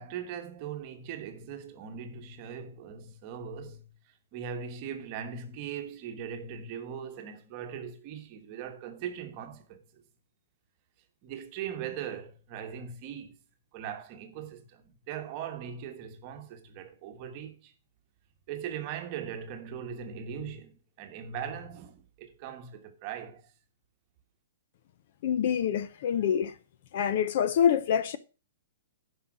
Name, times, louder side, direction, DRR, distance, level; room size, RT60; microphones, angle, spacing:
voice 1, 0.0-10.0 11.2-13.4 13.7-17.7 18.5-23.5, right 8 dB, 25° right, 1.2 m, -40 dB
voice 2, 25.2-26.5 26.9-28.2, left 8 dB, 35° left, 0.5 m, -26 dB
10.0 x 5.6 x 6.0 m
hypercardioid pair, 180°, 0 cm